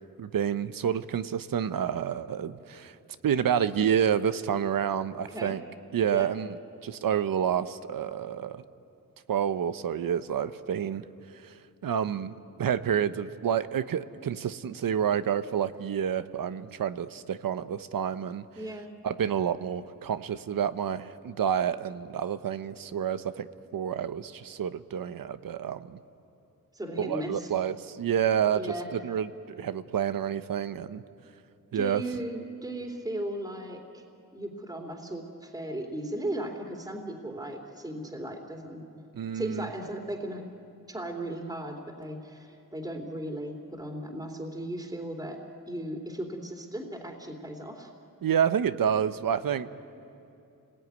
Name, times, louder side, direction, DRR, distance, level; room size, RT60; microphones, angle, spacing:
voice 1, 0.2-2.9 3.2-5.6 5.9-6.6 6.8-8.6 9.3-11.0 11.3-11.5 11.8-18.4 19.0-23.5 23.7-26.0 27.0-29.3 29.6-31.0 31.7-32.0 39.1-39.7 48.2-49.7, right 8 dB, 70° right, 12 dB, 0.9 m, -29 dB
voice 2, 5.3-5.6 6.1-6.3 18.6-19.0 26.7-27.5 28.5-28.9 31.7-34.0 34.3-39.0 39.3-40.5 40.9-45.4 45.7-47.9, right 1 dB, 10° right, 1 dB, 2.8 m, -36 dB
29.5 x 20.0 x 9.5 m, 2.7 s
cardioid pair, 85°, 36 cm